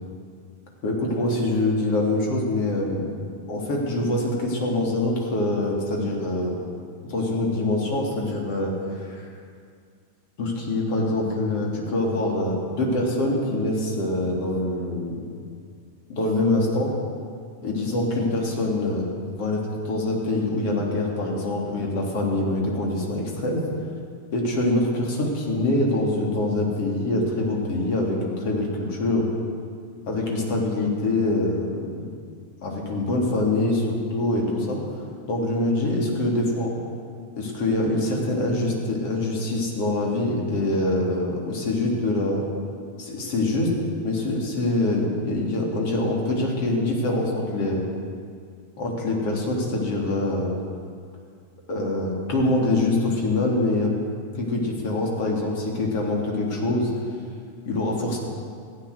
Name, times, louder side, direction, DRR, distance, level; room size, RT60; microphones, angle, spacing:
voice 1, 0.8-3.1 3.5-6.6 7.0-9.3 10.4-15.2 16.1-16.9 17.6-19.1 19.3-23.7 24.3-29.3 30.1-32.0 32.6-34.8 35.3-36.7 37.4-42.5 43.0-43.7 44.0-47.8 48.8-50.6 51.7-53.9 54.3-56.9 57.6-58.2, left 2 dB, 45° left, -1 dB, 3.2 m, -24 dB
15.5 x 9.2 x 6.5 m, 2.2 s
figure-of-eight pair, 90°, 0 cm